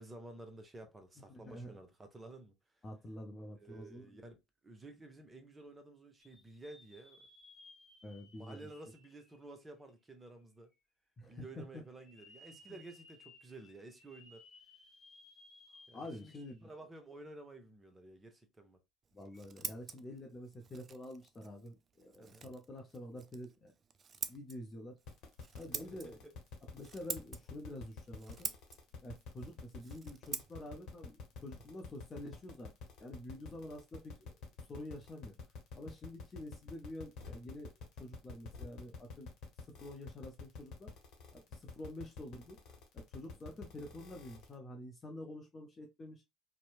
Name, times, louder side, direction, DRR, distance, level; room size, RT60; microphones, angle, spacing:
voice 1, 0.0-2.5 3.6-7.3 8.4-10.7 11.3-14.4 15.9-16.3 16.6-18.8 22.2-22.5 25.7-26.3 33.5-33.6 43.5-43.6, right 2 dB, 20° right, 0.8 m, -53 dB
voice 2, 1.3-1.7 2.8-4.2 8.0-8.7 11.2-11.8 15.9-16.7 19.1-23.7 24.3-25.0 25.5-26.2 26.7-28.5 29.0-31.2 31.4-32.7 33.0-34.4 34.7-35.3 35.7-37.7 38.0-39.3 39.8-40.9 41.3-42.6 42.9-46.2, left 1 dB, 30° left, 0.7 m, -48 dB
sound 1, 6.2-10.2 10.7-10.8 11.8-16.8 17.2-17.3 19.2-19.4, left 2 dB, 15° left, 1.1 m, -61 dB
Scissors, 19.0-32.6, right 6 dB, 40° right, 0.3 m, -48 dB
sound 2, 25.1-44.5, left 4 dB, 60° left, 1.0 m, -48 dB
2.9 x 2.1 x 2.4 m
hypercardioid pair, 60°, 0 cm